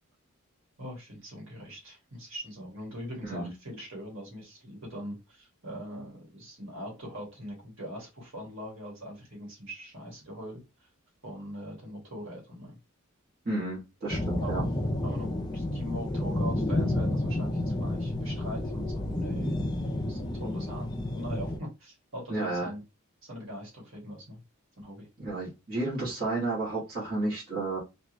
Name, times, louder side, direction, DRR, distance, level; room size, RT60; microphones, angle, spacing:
voice 1, 0.8-10.6 11.2-12.8 14.4-14.7 15.0-19.6 20.1-22.8 23.2-24.4 24.8-25.1, equal, 60° right, 1.8 m, -41 dB
voice 2, 13.4-14.6 22.3-22.7 25.2-27.8, right 2 dB, 45° right, 1.4 m, -32 dB
sound 1, 14.1-21.6, left 1 dB, 20° left, 0.4 m, -30 dB
3.5 x 2.4 x 3.0 m
head